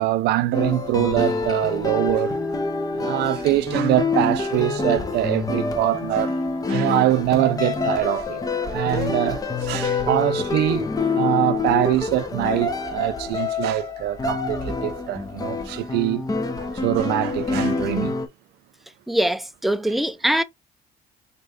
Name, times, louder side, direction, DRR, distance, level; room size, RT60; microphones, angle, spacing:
voice 1, 0.0-2.4 2.9-6.4 6.7-10.9 11.2-16.2 16.6-18.2, right 14 dB, 75° right, 0.5 m, -23 dB
sound 1, 0.5-18.3, left 3 dB, 20° left, 0.8 m, -26 dB
voice 2, 19.1-20.4, right 1 dB, ahead, 0.4 m, -22 dB
4.1 x 2.5 x 3.5 m
cardioid pair, 110°, 17 cm